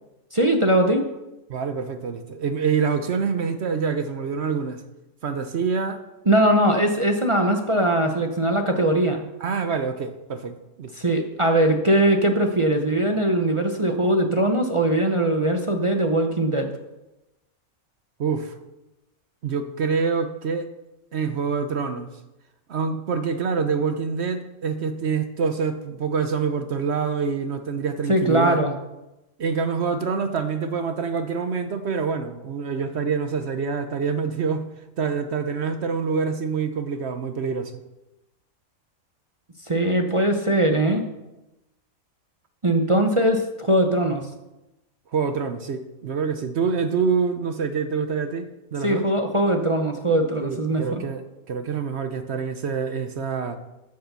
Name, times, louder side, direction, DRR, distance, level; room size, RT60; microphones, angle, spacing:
voice 1, 0.3-1.1 6.3-9.2 11.0-16.7 28.1-28.7 39.6-41.0 42.6-44.3 48.8-51.0, right 1 dB, 30° right, 3 dB, 0.7 m, -21 dB
voice 2, 1.5-4.8 5.2-6.0 9.4-10.9 18.2-18.5 19.4-20.7 21.1-22.1 22.7-28.6 29.4-34.7 35.0-37.7 45.1-49.0 50.4-53.6, right 5 dB, 55° right, 8 dB, 0.9 m, -26 dB
9.6 x 6.6 x 6.8 m, 0.97 s
omnidirectional pair, 1.5 m